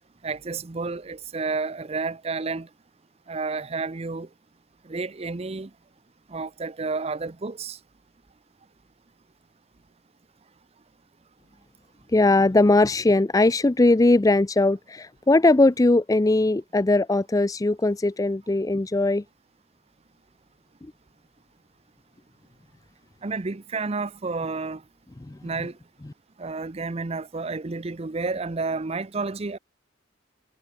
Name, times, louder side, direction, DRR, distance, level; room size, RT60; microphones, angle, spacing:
voice 1, 0.2-2.7 3.3-4.3 4.8-5.7 6.3-7.8 23.2-24.8 25.4-25.8 26.4-29.6, right 4 dB, 35° right, 0.6 m, -30 dB
voice 2, 12.1-19.2 25.3-25.4, left 2 dB, 20° left, 0.4 m, -20 dB
head